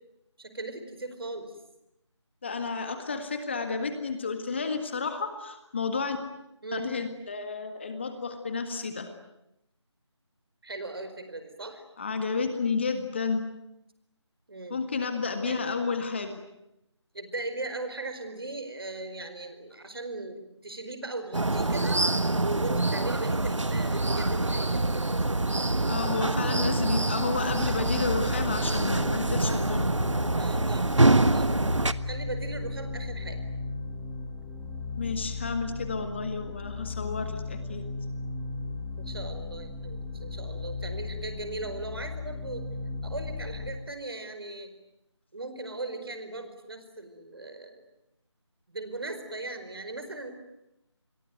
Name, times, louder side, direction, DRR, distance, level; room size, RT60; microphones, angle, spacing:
voice 1, 0.4-1.5 6.6-6.9 10.6-11.8 14.5-14.8 15.4-15.8 17.1-22.0 22.4-25.0 30.4-31.0 31.3-31.6 32.0-33.4 39.0-42.7 43.0-44.7 45.3-47.9 48.7-50.3, right 2 dB, 50° right, 9 dB, 4.8 m, -38 dB
voice 2, 2.4-6.2 6.7-9.1 12.0-13.4 14.7-16.4 25.9-29.9 35.0-37.8, left 4 dB, 25° left, 8 dB, 1.8 m, -31 dB
sound 1, 21.3-31.9, right 2 dB, 85° right, 1.5 m, -25 dB
sound 2, 27.2-43.7, left 3 dB, ahead, 1.4 m, -36 dB
28.5 x 22.5 x 9.4 m, 0.86 s
figure-of-eight pair, 165°, 15 cm